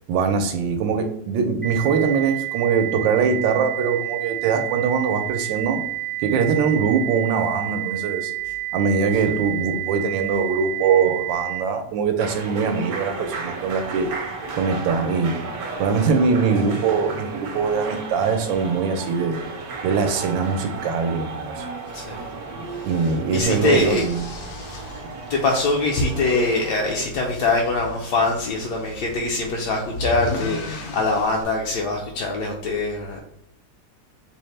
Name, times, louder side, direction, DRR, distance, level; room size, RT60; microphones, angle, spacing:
voice 1, 0.1-5.8 6.2-8.3 8.7-14.1 14.5-15.4 15.8-19.4 19.8-21.7 22.9-24.2, right 5 dB, 80° right, 6 dB, 1.3 m, -22 dB
sound 1, 1.6-11.6, right 19 dB, 20° right, 0.5 m, -30 dB
sound 2, 12.2-27.1, right 4 dB, 65° right, 1.0 m, -34 dB
voice 2, 21.9-22.3 22.7-24.0 24.6-24.9 25.3-33.2, left 3 dB, 70° left, 0 dB, 1.0 m, -23 dB
sound 3, 23.4-31.4, left 2 dB, 90° left, 1.5 m, -37 dB
5.4 x 2.1 x 3.2 m, 0.77 s
omnidirectional pair, 2.0 m